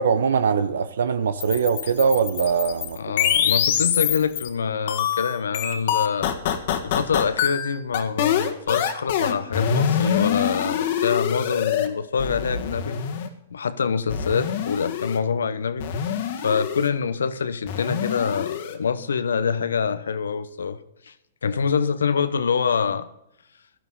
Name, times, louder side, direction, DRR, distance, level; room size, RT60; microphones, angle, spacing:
voice 1, 0.0-3.0, right 6 dB, 70° right, 12 dB, 0.8 m, -22 dB
sound 1, 1.4-4.5 4.9-11.9 12.2-13.3 14.1-15.2 15.8-16.9 17.7-18.8, left 9 dB, 55° left, 1.8 m, -25 dB
voice 2, 3.0-6.3 6.8-13.0 13.5-15.9 16.4-20.8 21.1-21.2 21.4-23.1, left 6 dB, 75° left, 13 dB, 1.0 m, -25 dB
16.5 x 12.0 x 4.0 m, 0.81 s
hypercardioid pair, 115°, 0 cm